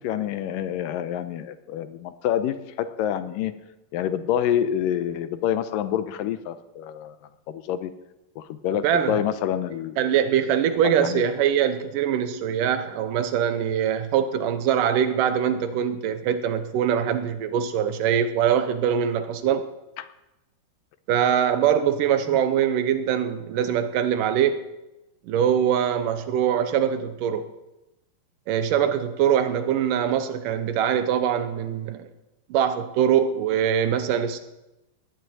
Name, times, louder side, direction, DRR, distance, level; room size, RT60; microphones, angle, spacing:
voice 1, 0.0-3.5 3.9-7.2 7.5-7.9 8.4-10.2 10.8-11.2 20.0-20.1, left 10 dB, 85° left, 12 dB, 2.4 m, -27 dB
voice 2, 8.8-9.2 10.0-19.7 21.1-24.6 25.3-27.5 28.5-32.1 32.5-34.4, right 9 dB, 75° right, 10 dB, 2.5 m, -23 dB
19.5 x 6.8 x 9.2 m, 0.97 s
omnidirectional pair, 4.0 m